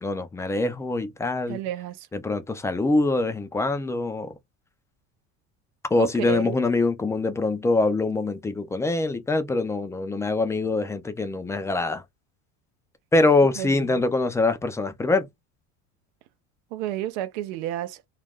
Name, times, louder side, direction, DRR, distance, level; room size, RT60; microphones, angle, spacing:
voice 1, 0.0-1.6 2.1-4.3 5.9-12.0 13.1-15.3, left 3 dB, 10° left, 0.3 m, -24 dB
voice 2, 1.5-2.1 6.0-6.6 13.6-14.0 16.7-18.0, right 13 dB, 85° right, 0.6 m, -31 dB
2.4 x 2.2 x 3.3 m
cardioid pair, 135°, 32 cm